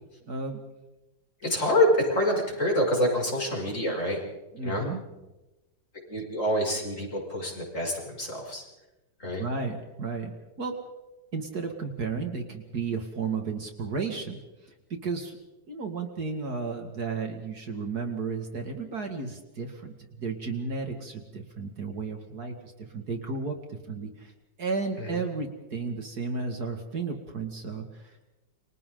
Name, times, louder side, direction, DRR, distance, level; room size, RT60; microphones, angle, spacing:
voice 1, 0.3-0.6 4.5-5.0 9.2-10.8 11.3-24.3 24.6-28.3, right 4 dB, 55° right, 4 dB, 2.6 m, -33 dB
voice 2, 1.4-4.2 4.6-4.9 6.1-8.7 9.2-9.4 25.0-25.2, left 1 dB, 40° left, -2 dB, 7.0 m, -26 dB
29.0 x 25.5 x 3.9 m, 1.0 s
omnidirectional pair, 2.1 m